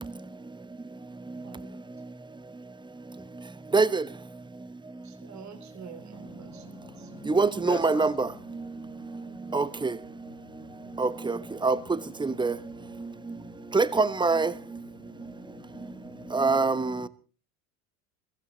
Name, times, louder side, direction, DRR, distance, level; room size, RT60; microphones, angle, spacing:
voice 1, 1.4-1.8 5.0-7.1 9.3-9.4, right 7 dB, 40° right, 3.1 m, -48 dB
voice 2, 6.1-13.8 14.5-17.1, left 10 dB, 75° left, 1.5 m, -49 dB
voice 3, 7.3-8.1 9.5-9.6 11.0-11.1 11.6-11.7 12.2-12.5 13.7-14.5 16.3-16.9, right 4 dB, 10° right, 1.0 m, -23 dB
22.5 x 15.5 x 4.0 m
hypercardioid pair, 75°, 44 cm